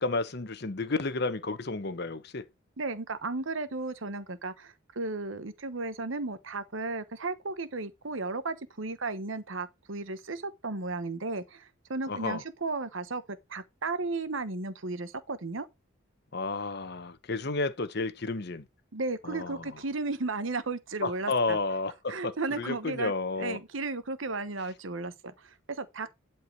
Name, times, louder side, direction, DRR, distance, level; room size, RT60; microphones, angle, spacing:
voice 1, 0.0-2.4 12.1-12.4 16.3-18.6 19.2-19.8 21.0-23.6, left 3 dB, 55° left, 1.0 m, -32 dB
voice 2, 2.8-15.7 18.9-21.6 22.1-26.1, right 3 dB, 80° right, 1.1 m, -34 dB
11.5 x 4.6 x 4.6 m
head